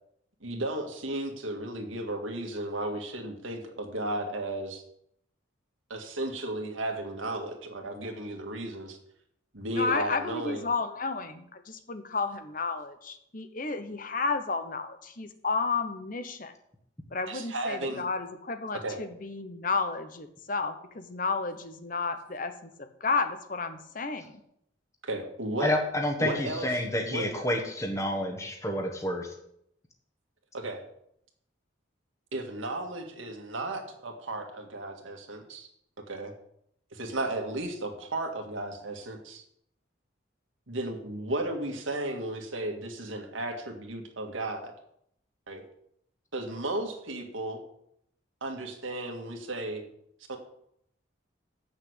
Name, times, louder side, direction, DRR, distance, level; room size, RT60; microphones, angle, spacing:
voice 1, 0.4-4.8 5.9-9.0 9.5-10.7 17.3-18.1 18.8-19.0 25.0-25.7 26.2-26.7 27.1-27.3 30.5-30.8 32.3-35.7 36.1-36.3 36.9-39.4 40.7-44.7 45.5-45.6 46.3-47.6 48.4-49.8 50.3-50.4, right 1 dB, 85° right, 3 dB, 1.9 m, -34 dB
voice 2, 9.7-16.5 17.1-24.4, left 4 dB, 45° left, 9 dB, 1.0 m, -32 dB
voice 3, 25.6-29.3, left 1 dB, 15° left, 3 dB, 1.4 m, -29 dB
8.4 x 6.5 x 8.1 m, 0.74 s
head